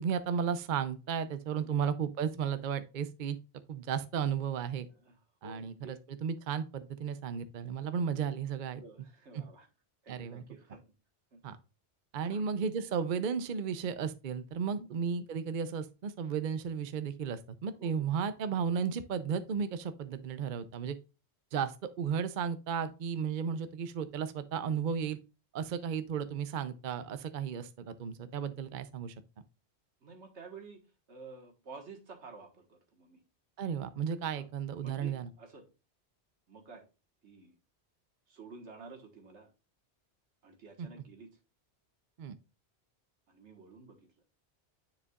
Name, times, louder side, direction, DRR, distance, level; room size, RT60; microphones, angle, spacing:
voice 1, 0.0-3.4 3.7-4.9 5.4-8.8 9.3-9.4 10.1-10.4 11.4-11.6 12.1-21.0 21.5-25.2 25.5-29.1 33.6-35.3 40.8-40.9 42.2-42.4, right 7 dB, 50° right, 0.7 m, -34 dB
voice 2, 5.4-6.0 8.7-9.7 10.0-10.8 11.3-11.4 12.2-12.4 14.7-14.9 17.8-18.1 30.0-30.8 31.1-33.2 34.3-34.5 34.8-35.6 36.5-36.8 37.2-37.5 38.3-39.5 40.4-41.3 43.3-44.1, right 4 dB, 85° right, 1.8 m, -51 dB
9.5 x 5.1 x 2.4 m
omnidirectional pair, 1.1 m